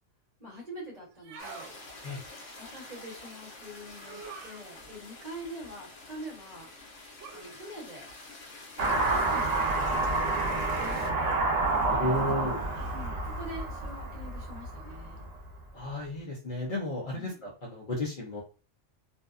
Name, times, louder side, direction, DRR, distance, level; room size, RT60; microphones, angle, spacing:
voice 1, 0.4-1.7 2.6-6.7 7.3-8.1 8.9-11.4 12.8-15.3 17.1-17.4, right 1 dB, 35° right, -5 dB, 1.0 m, -45 dB
sound 1, 1.1-1.7 4.0-4.6 7.2-7.5 8.9-9.3 10.6-11.1 12.7-13.1, right 5 dB, 75° right, 0.9 m, -46 dB
sound 2, 1.4-11.1, left 2 dB, 80° left, 1.1 m, -48 dB
Car passing by / Accelerating revving vroom, 8.8-15.4, right 2 dB, 55° right, 0.4 m, -29 dB
voice 2, 11.9-12.6 15.7-18.4, left 1 dB, 50° left, -3 dB, 0.8 m, -33 dB
2.6 x 2.2 x 2.4 m, 0.34 s
omnidirectional pair, 1.3 m